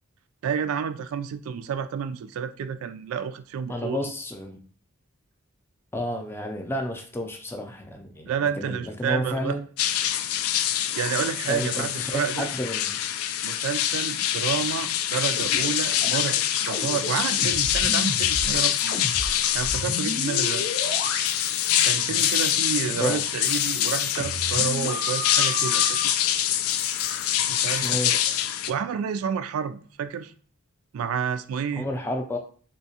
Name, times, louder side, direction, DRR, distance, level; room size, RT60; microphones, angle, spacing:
voice 1, 0.4-4.1 8.2-9.6 11.0-12.5 13.4-19.0 19.5-20.7 21.8-26.1 27.5-28.2 28.7-30.3 30.9-31.9, right 7 dB, 75° right, 0.3 m, -30 dB
voice 2, 3.7-4.6 5.9-8.3 8.6-9.6 11.5-13.0 22.9-23.2 27.7-28.1 31.8-32.4, left 1 dB, 10° left, 0.4 m, -31 dB
sound 1, 9.8-28.7, left 11 dB, 80° left, 0.3 m, -25 dB
sound 2, 15.4-19.3 19.6-21.9 22.2-22.9 23.3-26.0 26.7-27.9, left 1 dB, 60° left, 0.7 m, -34 dB
3.5 x 2.8 x 2.8 m
head